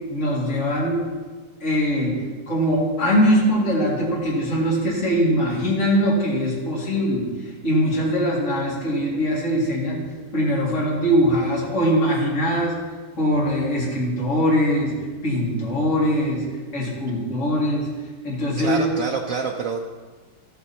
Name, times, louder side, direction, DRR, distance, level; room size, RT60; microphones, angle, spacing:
voice 1, 0.1-1.0 1.6-2.1 2.5-10.0 10.3-12.7 13.2-14.9 15.2-16.4 16.7-17.9 18.2-18.8, equal, 40° left, -5 dB, 2.4 m, -21 dB
voice 2, 18.6-19.8, right 5 dB, 85° right, 2 dB, 0.7 m, -26 dB
13.5 x 8.5 x 2.8 m, 1.4 s
omnidirectional pair, 2.1 m